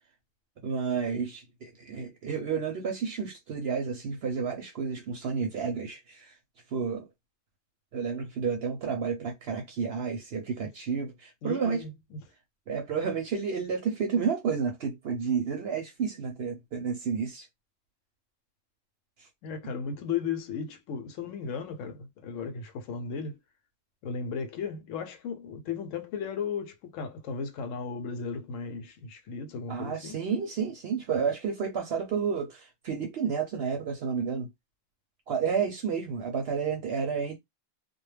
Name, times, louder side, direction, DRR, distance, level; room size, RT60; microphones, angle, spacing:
voice 1, 0.6-6.3 6.7-7.1 7.9-11.8 12.7-17.5 29.7-34.5 35.3-37.4, right 6 dB, 60° right, 0.8 m, -31 dB
voice 2, 11.4-11.9 19.4-23.4 24.0-30.2, left 6 dB, 80° left, 0.9 m, -35 dB
2.3 x 2.1 x 3.1 m
omnidirectional pair, 1.3 m